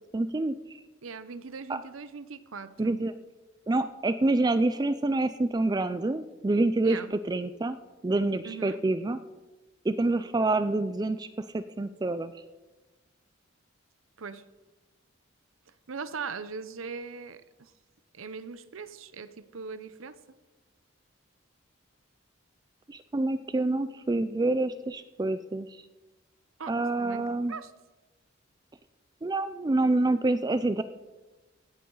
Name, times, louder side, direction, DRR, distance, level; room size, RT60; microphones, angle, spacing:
voice 1, 0.1-0.8 1.7-1.8 2.8-3.1 3.7-7.8 8.0-9.2 9.8-12.3 22.9-25.8 26.7-27.5 29.2-30.8, right 2 dB, 20° right, 12 dB, 0.4 m, -27 dB
voice 2, 1.0-3.0 6.8-7.1 8.4-8.8 14.2-14.4 15.9-17.7 18.1-20.2 26.6-27.7, right 5 dB, 80° right, 14 dB, 0.7 m, -40 dB
17.0 x 10.0 x 3.9 m, 1.2 s
head